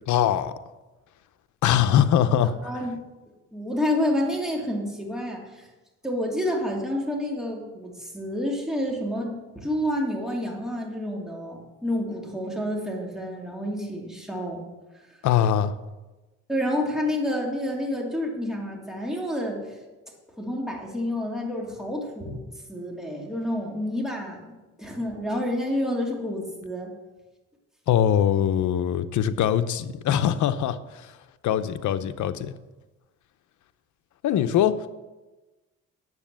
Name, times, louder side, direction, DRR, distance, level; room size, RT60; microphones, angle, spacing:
voice 1, 0.1-0.5 1.6-2.7 15.2-15.7 27.9-30.8 31.4-32.5 34.2-34.9, left 10 dB, 75° left, 11 dB, 0.8 m, -22 dB
voice 2, 2.2-3.0 3.5-5.7 6.0-14.6 14.9-15.0 16.5-19.6 20.4-22.4 22.7-24.5 24.8-26.9, left 1 dB, ahead, -1 dB, 2.8 m, -29 dB
9.7 x 7.6 x 7.5 m, 1.1 s
cardioid pair, 90°, 30 cm